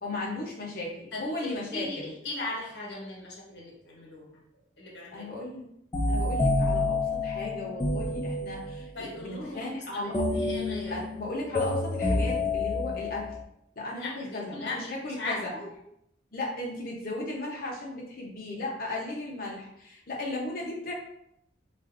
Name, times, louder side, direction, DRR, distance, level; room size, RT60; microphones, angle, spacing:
voice 1, 0.0-2.1 5.1-5.7 6.1-10.3 10.9-13.4 13.8-15.5 16.3-20.9, left 2 dB, 50° left, -2 dB, 0.8 m, -36 dB
voice 2, 1.1-4.4 4.8-5.3 8.9-11.0 13.9-15.7, left 2 dB, 65° left, -3 dB, 1.1 m, -38 dB
sound 1, 5.9-8.9 10.1-13.4, left 2 dB, 20° left, 0.3 m, -28 dB
3.8 x 2.5 x 2.5 m, 0.76 s
head